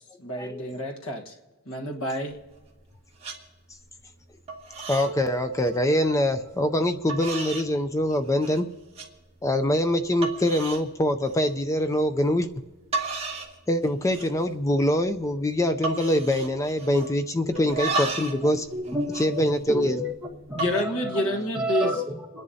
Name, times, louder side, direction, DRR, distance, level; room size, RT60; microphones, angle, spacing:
voice 1, 0.2-1.3 1.6-2.3 20.5-22.0, left 1 dB, 65° left, 2 dB, 1.3 m, -28 dB
sound 1, 2.3-2.9 3.2-3.4 3.8-4.2 4.5-5.1 5.4-5.8 6.5-6.6 7.1-7.7 8.1-8.6 9.0-9.1 9.6-9.7 10.2-10.9 11.3-11.5 12.6-12.7 12.9-13.6 13.9-14.4 14.7-14.8 15.1-15.4 15.8-17.2 17.6-18.4 18.7-20.0 20.5-20.8, right 3 dB, 30° right, 1.6 m, -33 dB
voice 2, 4.9-8.7 9.4-12.5 13.7-18.7 19.1-20.0, left 1 dB, 15° left, 8 dB, 0.4 m, -24 dB
sound 2, 4.9-6.6, right 2 dB, 60° right, 1.3 m, -43 dB
voice 3, 18.4-20.1 20.4-22.4, equal, 5° right, -3 dB, 1.5 m, -31 dB
30.0 x 10.5 x 2.7 m, 1.2 s
head